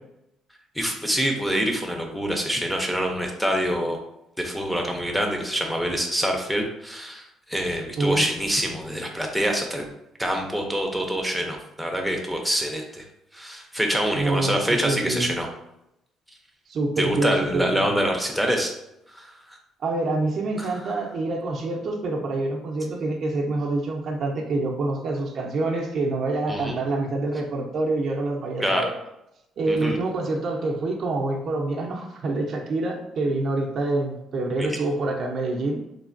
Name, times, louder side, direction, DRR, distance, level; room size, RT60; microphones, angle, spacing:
voice 1, 0.8-4.0 4.4-7.2 7.5-9.9 10.2-13.0 13.3-15.5 17.0-18.7 19.2-19.3 20.6-20.7 26.5-26.8 28.6-28.8 29.7-30.0 34.6-34.7, equal, ahead, 2 dB, 0.5 m, -25 dB
voice 2, 14.1-15.3 16.7-17.9 19.8-28.9 29.6-35.8, right 2 dB, 55° right, 1 dB, 0.5 m, -26 dB
3.2 x 2.2 x 2.5 m, 0.84 s
cardioid pair, 100°, 0 cm